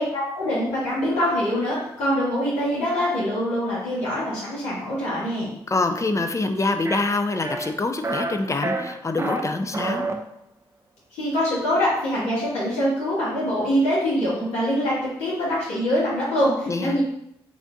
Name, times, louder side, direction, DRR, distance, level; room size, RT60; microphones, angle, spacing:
voice 1, 0.0-5.5 11.2-17.0, equal, 80° left, -8 dB, 1.5 m, -24 dB
voice 2, 5.7-10.1 16.7-17.0, left 3 dB, 25° left, 7 dB, 0.5 m, -25 dB
sound 1, 6.8-7.0 7.4-7.7 8.0-8.3 8.6-9.4 9.7-10.1, right 2 dB, 25° right, 0.6 m, -27 dB
3.5 x 2.6 x 3.5 m, 0.77 s
hypercardioid pair, 40°, 11 cm